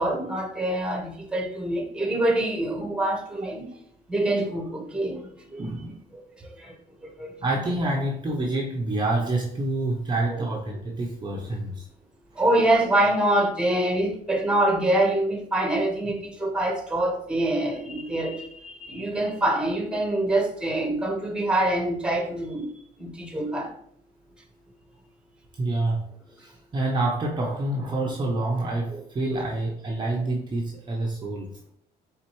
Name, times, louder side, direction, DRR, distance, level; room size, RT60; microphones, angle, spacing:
voice 1, 0.0-3.7 4.1-5.2 5.5-5.7 6.1-6.2 6.6-6.7 7.0-7.4 12.4-22.7 23.0-23.7 28.9-29.0 29.3-29.5, right 1 dB, 5° right, 0.9 m, -25 dB
voice 2, 5.6-6.0 7.4-11.9 25.6-26.1 26.4-31.5, right 2 dB, 25° right, 0.6 m, -27 dB
4.4 x 3.5 x 3.0 m
cardioid pair, 110°, 17 cm